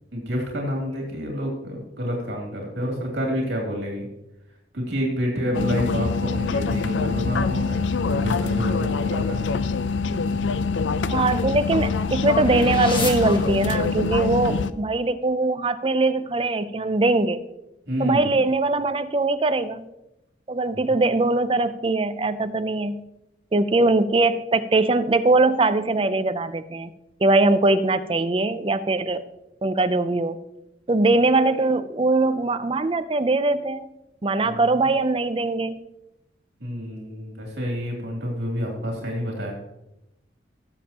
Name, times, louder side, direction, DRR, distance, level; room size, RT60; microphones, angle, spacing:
voice 1, 0.1-4.1 4.7-9.4 17.9-18.4 20.7-20.9 34.4-34.9 36.6-39.5, equal, 70° right, -1 dB, 2.7 m, -28 dB
sound 1, 5.5-14.7, left 4 dB, 85° left, 0.5 m, -24 dB
sound 2, 10.8-14.2, left 2 dB, 25° left, 1.4 m, -35 dB
voice 2, 11.1-17.4 18.0-19.8 20.5-23.0 23.5-26.9 27.2-29.2 29.6-30.4 30.9-33.9 34.2-35.8, right 2 dB, 30° right, 11 dB, 0.5 m, -21 dB
18.5 x 7.3 x 2.9 m, 0.91 s
head